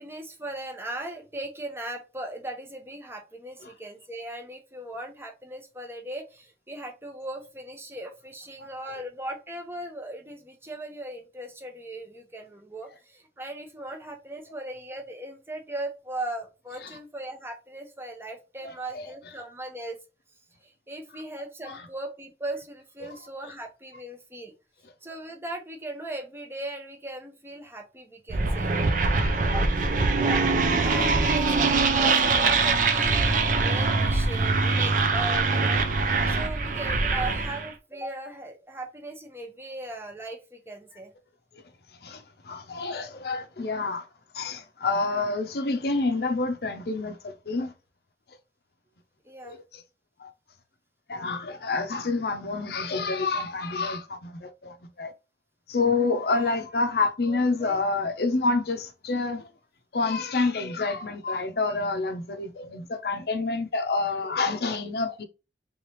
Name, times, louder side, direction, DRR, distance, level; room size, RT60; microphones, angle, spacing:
voice 1, 0.0-20.0 20.6-24.5 25.0-28.7 29.4-29.7 30.2-30.4 30.7-35.8 36.3-41.1 49.2-49.6 56.3-56.6 57.3-57.8, right 1 dB, 15° right, 0.7 m, -38 dB
voice 2, 18.6-19.1 21.7-21.8 23.1-23.2 29.2-29.4 42.0-44.1 44.3-47.7 49.4-49.8 50.2-50.3 51.1-55.1 55.7-59.5 59.9-65.2, left 3 dB, 60° left, 0.6 m, -28 dB
sound 1, 28.3-37.7, right 3 dB, 45° right, 0.5 m, -23 dB
3.4 x 3.2 x 2.9 m
head